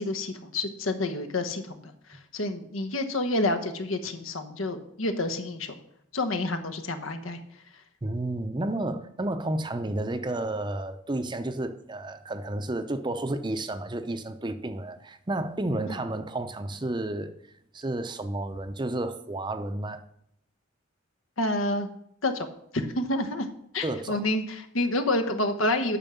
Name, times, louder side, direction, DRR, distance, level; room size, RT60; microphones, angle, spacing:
voice 1, 0.0-5.8 6.1-7.4 15.9-16.0 21.4-21.9 22.2-22.5 22.7-23.5 23.7-26.0, left 2 dB, 85° left, 1.2 m, -29 dB
voice 2, 8.0-17.3 17.7-20.0 23.8-24.2, right 1 dB, 25° right, 0.6 m, -31 dB
9.0 x 6.3 x 6.9 m
head